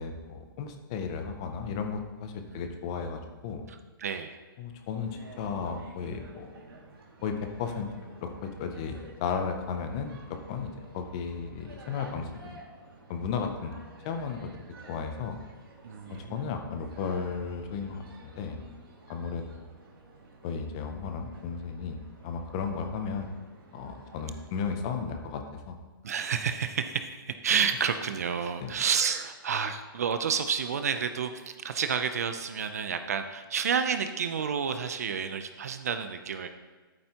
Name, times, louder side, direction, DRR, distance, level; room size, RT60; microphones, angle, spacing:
voice 1, 0.0-3.6 4.6-6.6 7.2-7.9 8.2-12.6 13.1-13.7 14.0-14.5 14.9-15.4 16.2-18.6 19.1-19.7 20.4-23.3 23.7-25.8 28.6-28.7, left 5 dB, 15° left, 6 dB, 0.5 m, -34 dB
voice 2, 3.7-4.4 15.8-16.5 26.0-36.5, right 7 dB, 45° right, 9 dB, 0.5 m, -30 dB
sound 1, 5.1-24.6, right 2 dB, 80° right, 2.2 m, -52 dB
11.0 x 8.8 x 2.9 m, 1.3 s
hypercardioid pair, 180°, 12 cm